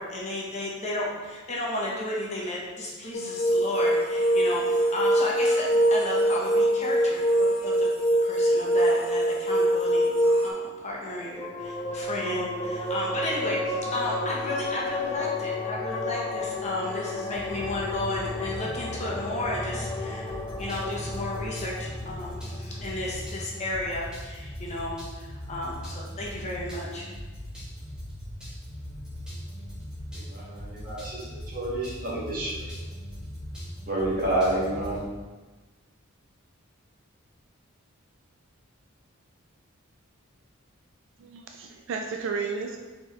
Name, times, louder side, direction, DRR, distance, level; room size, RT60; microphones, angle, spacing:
voice 1, 0.0-7.9 8.2-10.1 10.4-20.3 20.6-27.1, left 1 dB, 35° left, -4 dB, 0.9 m, -33 dB
sound 1, 3.1-10.5, right 1 dB, 75° left, 1.0 m, -23 dB
sound 2, 11.4-24.2, left 2 dB, 15° left, 0.3 m, -33 dB
sound 3, 17.3-35.1, equal, 5° right, 1.1 m, -40 dB
voice 2, 30.3-32.5 33.9-35.0, right 1 dB, 45° right, -6 dB, 1.4 m, -29 dB
voice 3, 41.2-42.8, right 5 dB, 60° right, 4 dB, 0.3 m, -32 dB
4.2 x 3.8 x 3.1 m, 1.3 s
head